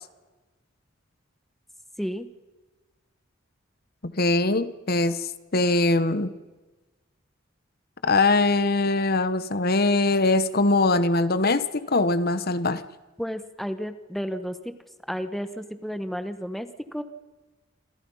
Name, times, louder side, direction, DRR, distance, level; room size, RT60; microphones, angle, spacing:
voice 1, 4.0-6.3 8.0-12.8, left 2 dB, 50° left, 13 dB, 1.2 m, -22 dB
voice 2, 13.2-14.7 15.1-17.0, equal, ahead, 10 dB, 1.2 m, -32 dB
27.5 x 27.0 x 5.6 m, 1.2 s
head